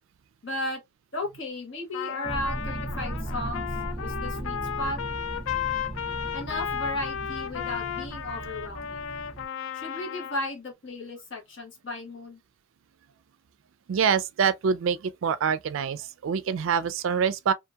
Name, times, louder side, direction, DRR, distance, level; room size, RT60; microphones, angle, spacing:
voice 1, 0.4-0.8 1.1-3.7 4.0-5.0 6.3-9.0 9.7-12.4, left 2 dB, 65° left, 1.2 m, -34 dB
Trumpet, 1.9-10.5, left 9 dB, 80° left, 0.4 m, -34 dB
sound 1, 2.2-9.5, right 2 dB, 20° right, 0.6 m, -37 dB
voice 2, 13.9-17.5, right 6 dB, 75° right, 0.3 m, -25 dB
2.7 x 2.5 x 2.2 m
head